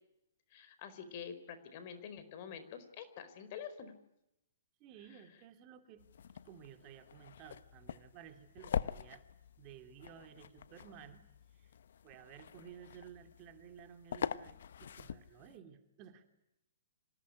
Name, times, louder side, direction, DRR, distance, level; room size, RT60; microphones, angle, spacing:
voice 1, 0.5-3.9, left 7 dB, 45° left, 11 dB, 4.7 m, -47 dB
voice 2, 4.8-6.0 6.4-9.2 9.6-11.2 11.5-11.8 12.0-16.2, right 9 dB, 35° right, 6 dB, 3.1 m, -55 dB
sound 1, 6.0-15.6, left 8 dB, 65° left, 1.0 m, -44 dB
26.5 x 18.0 x 9.9 m, 0.84 s
hypercardioid pair, 125°, 0 cm